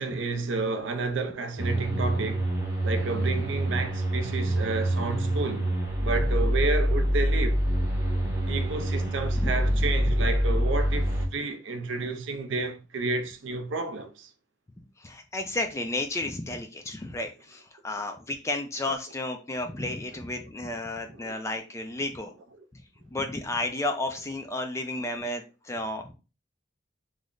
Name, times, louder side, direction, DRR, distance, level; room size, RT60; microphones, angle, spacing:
voice 1, 0.0-2.5 2.8-5.7 6.0-7.6 8.5-14.3 21.1-21.4, right 3 dB, 70° right, 0.5 m, -31 dB
sound 1, 1.6-11.3, right 1 dB, 15° right, 0.8 m, -26 dB
voice 2, 9.4-9.8 15.0-22.3 22.7-22.8 23.1-26.1, left 2 dB, 15° left, 0.3 m, -32 dB
3.2 x 2.0 x 3.7 m
head